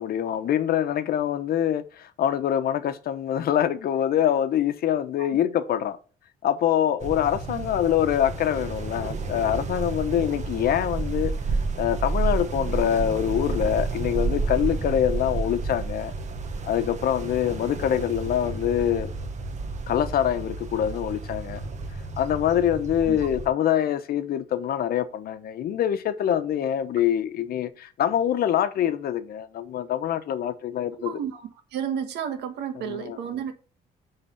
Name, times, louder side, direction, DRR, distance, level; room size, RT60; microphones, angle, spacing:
voice 1, 0.0-6.0 6.4-11.3 11.8-16.1 16.7-19.1 19.9-21.6 22.2-31.2 32.8-33.2, left 10 dB, 65° left, 1.0 m, -25 dB
sound 1, 7.0-23.5, right 3 dB, 45° right, 1.5 m, -31 dB
voice 2, 31.0-31.4 31.7-33.5, right 8 dB, 85° right, 1.6 m, -31 dB
10.0 x 3.9 x 5.3 m
cardioid pair, 105°, 17 cm